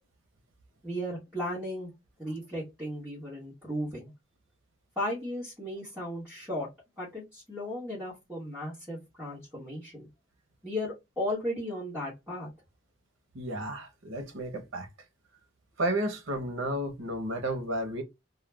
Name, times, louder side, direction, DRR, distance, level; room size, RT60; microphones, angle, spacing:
voice 1, 0.8-1.9 2.2-4.1 5.0-6.7 7.0-10.1 10.6-12.5, left 1 dB, 5° right, 1.1 m, -35 dB
voice 2, 13.3-14.9 15.8-18.0, right 1 dB, 85° right, 0.8 m, -32 dB
2.4 x 2.1 x 3.1 m
head